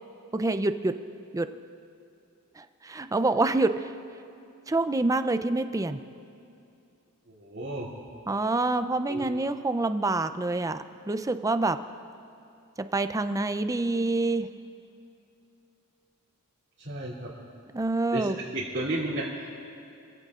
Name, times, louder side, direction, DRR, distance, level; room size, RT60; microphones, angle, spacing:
voice 1, 0.3-0.9 1.3-1.5 2.6-3.9 4.7-6.0 8.3-10.8 11.1-11.8 12.8-14.5 17.7-18.4, right 2 dB, 15° right, 10 dB, 0.4 m, -26 dB
voice 2, 7.3-7.9 9.1-9.4 16.8-17.3 18.1-18.2 18.5-19.5, right 1 dB, 50° right, -9 dB, 2.7 m, -33 dB
26.5 x 16.0 x 2.5 m, 2.6 s
head